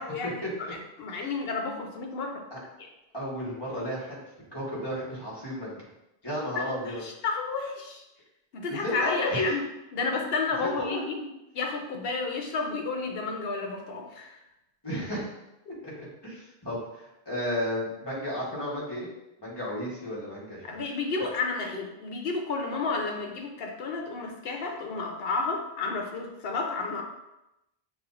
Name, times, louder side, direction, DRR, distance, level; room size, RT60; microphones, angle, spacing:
voice 1, 0.0-2.4 6.6-8.0 8.5-9.6 9.9-11.2 11.5-14.4 20.6-27.0, left 4 dB, 70° left, 2 dB, 0.9 m, -31 dB
voice 2, 3.1-4.2 4.5-5.9 6.2-7.0 8.7-9.5 10.6-11.3 14.8-15.3 15.8-19.1 19.4-20.8, left 1 dB, 25° left, -7 dB, 1.4 m, -33 dB
6.0 x 2.5 x 2.5 m, 0.91 s
omnidirectional pair, 1.1 m